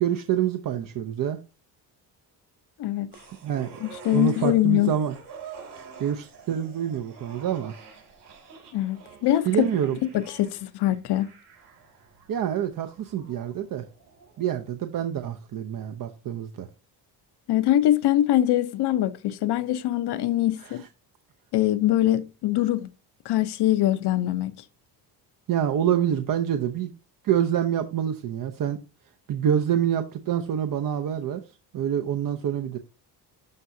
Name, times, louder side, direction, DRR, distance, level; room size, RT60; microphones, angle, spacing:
voice 1, 0.0-1.4 3.4-3.8 4.1-5.1 6.0-7.8 9.4-10.0 12.3-13.9 14.4-16.7 20.6-20.9 25.5-26.9 27.2-28.8 29.3-31.4 31.7-32.8, right 9 dB, 50° right, 0.7 m, -26 dB
voice 2, 2.8-3.1 3.8-4.9 8.7-9.7 10.1-11.3 17.5-20.8 21.5-22.9 23.2-24.5, left 13 dB, 70° left, 0.8 m, -23 dB
sound 1, 3.1-14.6 15.0-15.1, right 6 dB, 70° right, 4.2 m, -48 dB
12.0 x 4.7 x 2.7 m
cardioid pair, 110°, 42 cm